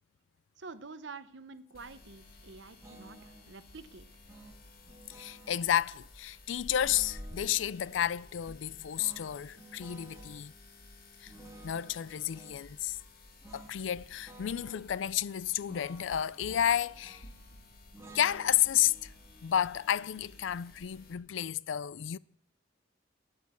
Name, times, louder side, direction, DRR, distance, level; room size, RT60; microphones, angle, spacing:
voice 1, 0.6-4.1, right 4 dB, 70° right, 0.8 m, -48 dB
sound 1, 1.7-21.1, left 1 dB, 55° left, 2.0 m, -53 dB
sound 2, 2.8-3.5 4.3-5.8 6.8-8.2 8.9-10.4 11.3-12.6 13.4-13.8 14.0-14.9 15.7-17.4 17.9-21.0, right 1 dB, 15° right, 2.1 m, -54 dB
voice 2, 5.1-10.5 11.2-11.3 11.6-13.0 13.5-17.2 18.1-19.1 19.4-22.2, left 10 dB, 80° left, 0.4 m, -31 dB
10.5 x 8.6 x 8.2 m
head